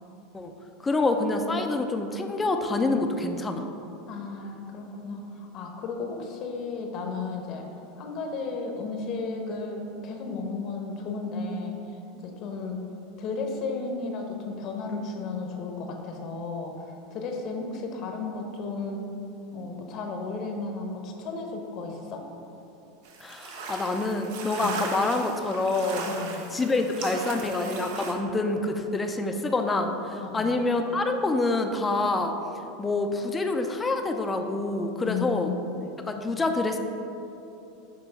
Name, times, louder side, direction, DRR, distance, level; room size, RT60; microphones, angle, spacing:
voice 1, 0.8-3.7 23.2-26.1 26.5-32.3 32.8-35.5 36.0-36.8, left 2 dB, 15° left, 5 dB, 0.5 m, -27 dB
voice 2, 4.1-7.7 8.0-11.8 12.1-12.8 13.2-19.0 19.5-22.2 24.6-24.7 26.0-26.5 30.2-30.5 35.0-35.9, left 4 dB, 50° left, 2 dB, 0.9 m, -34 dB
sound 1, 23.0-28.1, right 4 dB, 70° right, 0.9 m, -37 dB
7.0 x 3.0 x 5.6 m, 2.8 s
supercardioid pair, 120°, 0 cm